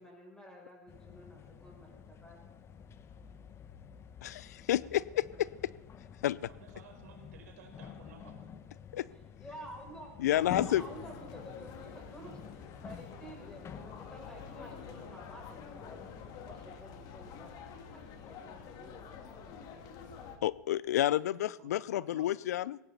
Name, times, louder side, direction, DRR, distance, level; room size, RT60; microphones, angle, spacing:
voice 1, 0.0-2.4 9.4-16.1 16.4-19.2, right 1 dB, 10° left, -1 dB, 7.1 m, -51 dB
sound 1, 0.9-16.8, left 8 dB, 30° left, 1.1 m, -50 dB
voice 2, 4.2-5.5 6.2-6.5 8.9-9.1 10.2-10.8 20.4-22.8, left 13 dB, 75° left, 21 dB, 0.4 m, -30 dB
voice 3, 6.4-8.4 20.9-22.3, right 5 dB, 70° right, 1 dB, 4.7 m, -56 dB
sound 2, 10.3-20.4, left 6 dB, 45° left, 2.3 m, -48 dB
18.5 x 17.0 x 4.2 m, 1.1 s
hypercardioid pair, 95°, 9 cm